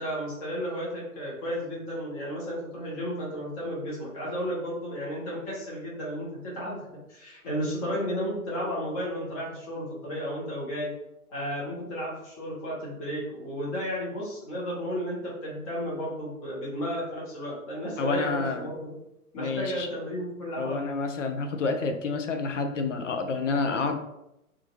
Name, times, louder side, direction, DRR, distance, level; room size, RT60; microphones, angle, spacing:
voice 1, 0.0-10.9 11.3-18.9 19.3-20.8, equal, 25° left, -6 dB, 0.8 m, -33 dB
voice 2, 18.0-18.7 19.4-19.9 20.6-24.0, left 4 dB, 55° left, 5 dB, 0.5 m, -29 dB
2.4 x 2.3 x 2.9 m, 0.85 s
figure-of-eight pair, 120°, 45 cm